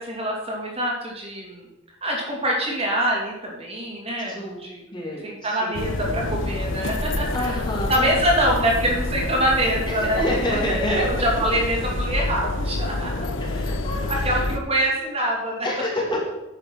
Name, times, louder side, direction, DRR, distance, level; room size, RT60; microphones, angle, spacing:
voice 1, 0.0-1.7 2.0-4.8 5.2-7.6 7.9-13.2 14.2-15.7, right 1 dB, 30° right, -2 dB, 2.6 m, -25 dB
voice 2, 4.3-4.6 4.9-6.3 7.3-8.1 8.5-8.6 10.1-11.1 13.4-14.4 15.6-16.2, equal, 25° left, -2 dB, 2.7 m, -28 dB
sound 1, 5.7-14.6, left 2 dB, 70° left, 1.1 m, -27 dB
10.5 x 7.9 x 6.2 m, 0.98 s
head